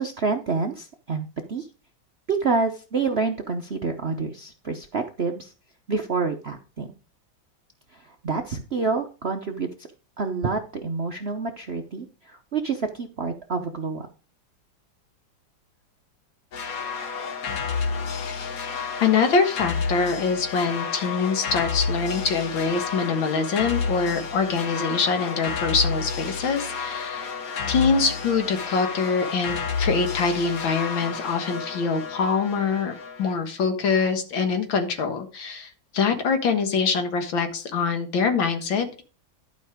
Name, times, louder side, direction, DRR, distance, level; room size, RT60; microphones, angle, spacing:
voice 1, 0.0-1.7 2.3-5.5 5.9-6.9 7.9-9.9 10.2-14.1, right 4 dB, 55° right, 5 dB, 0.7 m, -28 dB
sound 1, 16.5-33.4, left 5 dB, 50° left, 1.3 m, -30 dB
voice 2, 19.0-27.4 27.7-39.0, left 5 dB, 75° left, 7 dB, 2.2 m, -24 dB
12.0 x 5.4 x 4.9 m, 0.35 s
omnidirectional pair, 2.1 m